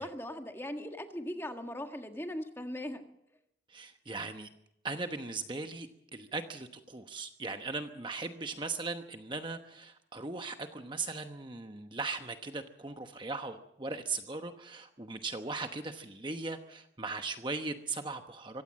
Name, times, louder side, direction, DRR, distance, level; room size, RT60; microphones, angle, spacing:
voice 1, 0.0-3.0, left 1 dB, 10° left, 5 dB, 1.7 m, -39 dB
voice 2, 3.7-4.5 4.8-18.6, right 3 dB, 25° right, 6 dB, 1.0 m, -38 dB
24.5 x 16.5 x 7.5 m, 0.78 s
head